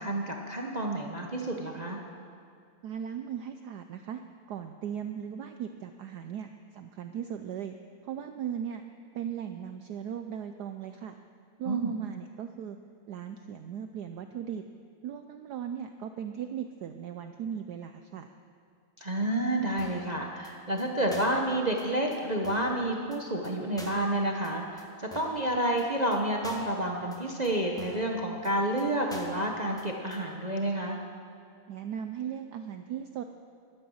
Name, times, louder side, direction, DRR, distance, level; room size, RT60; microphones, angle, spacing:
voice 1, 0.0-2.0 11.6-11.9 19.0-31.0, right 1 dB, 60° right, 0 dB, 0.4 m, -30 dB
voice 2, 2.8-4.2 4.5-7.7 8.0-8.8 9.1-11.1 11.6-12.8 13.1-14.6 15.0-18.3 31.7-33.2, right 8 dB, 90° right, 8 dB, 0.8 m, -37 dB
sound 1, 19.8-20.1 20.4-20.5 20.8-20.9 21.1-21.4 21.8-21.9 22.1-22.2 22.4-22.8 23.1-23.2 23.4-23.5 23.8-24.1 24.4-24.5 24.8-24.9 25.1-25.4 25.8-25.9 26.1-26.2 26.4-26.8 27.1-27.2 27.4-27.5 27.8-28.1 28.4-28.5 28.8-28.9 29.1-29.4 29.8-29.9 30.1-30.2, left 1 dB, ahead, 0.9 m, -46 dB
13.0 x 12.0 x 6.4 m, 2.4 s
omnidirectional pair, 2.4 m